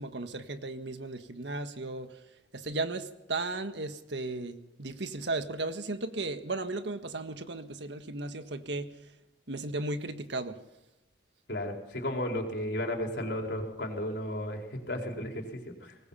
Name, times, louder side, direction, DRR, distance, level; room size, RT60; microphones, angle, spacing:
voice 1, 0.0-2.2 2.5-8.9 9.5-10.6, right 2 dB, 70° right, 8 dB, 1.6 m, -35 dB
voice 2, 11.5-16.0, left 1 dB, 65° left, 1 dB, 4.5 m, -34 dB
24.0 x 19.5 x 5.7 m, 0.93 s
head